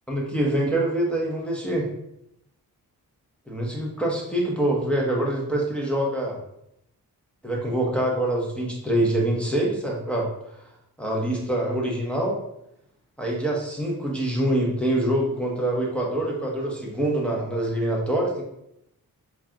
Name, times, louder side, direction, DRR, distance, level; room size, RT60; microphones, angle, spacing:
voice 1, 0.1-1.9 3.5-6.4 7.4-10.3 11.0-12.4 13.2-18.4, right 1 dB, 5° left, -3 dB, 0.8 m, -25 dB
4.5 x 2.5 x 2.8 m, 0.80 s
cardioid pair, 80°, 37 cm